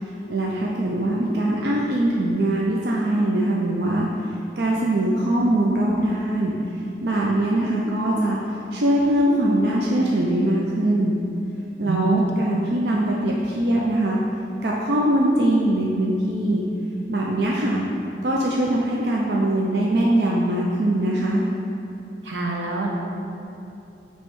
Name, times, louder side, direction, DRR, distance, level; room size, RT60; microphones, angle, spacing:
voice 1, 0.0-4.1 4.6-6.5 7.0-8.4 8.7-11.2 11.8-14.2 14.6-16.6 17.1-17.8 18.2-21.4, right 1 dB, 65° right, -3 dB, 0.5 m, -22 dB
voice 2, 11.8-12.2 22.2-22.9, right 3 dB, 90° right, -1 dB, 1.0 m, -25 dB
8.7 x 3.1 x 4.6 m, 2.8 s
head